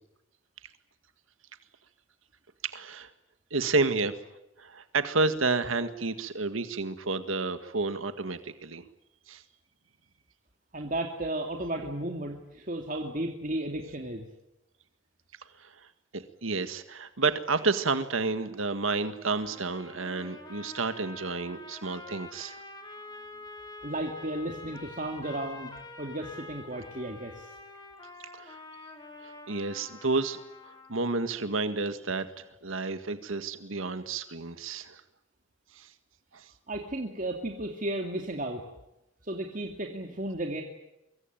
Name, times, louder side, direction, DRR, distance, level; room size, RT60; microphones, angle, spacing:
voice 1, 2.6-3.1 3.5-4.2 4.6-8.8 9.3-9.4 15.6-15.9 16.1-22.6 28.3-28.6 29.2-35.0 35.7-35.9 36.3-36.5, right 3 dB, 85° right, 10 dB, 1.8 m, -30 dB
voice 2, 10.7-14.2 23.8-25.7 26.0-27.5 36.7-38.6 39.2-40.6, right 1 dB, 40° right, 2 dB, 2.6 m, -34 dB
sound 1, 19.4-31.1, left 2 dB, 20° left, 5.5 m, -46 dB
24.5 x 24.0 x 9.0 m, 0.90 s
head